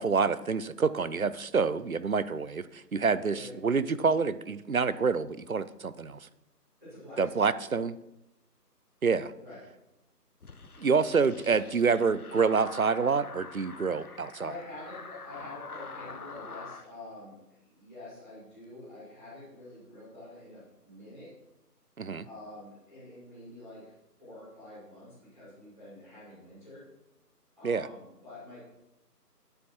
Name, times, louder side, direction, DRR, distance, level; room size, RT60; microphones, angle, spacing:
voice 1, 0.0-6.2 7.2-8.0 9.0-9.3 10.8-14.5 22.0-22.3 27.6-27.9, right 5 dB, 60° right, 16 dB, 0.6 m, -27 dB
voice 2, 6.8-7.5 9.4-9.6 14.0-14.1 14.4-21.3 22.2-23.9 24.2-26.8 27.5-28.6, left 2 dB, 10° right, -18 dB, 3.2 m, -47 dB
sound 1, 10.4-16.9, left 4 dB, 65° left, 0.9 m, -45 dB
9.9 x 9.1 x 4.5 m, 0.89 s
figure-of-eight pair, 175°, 49 cm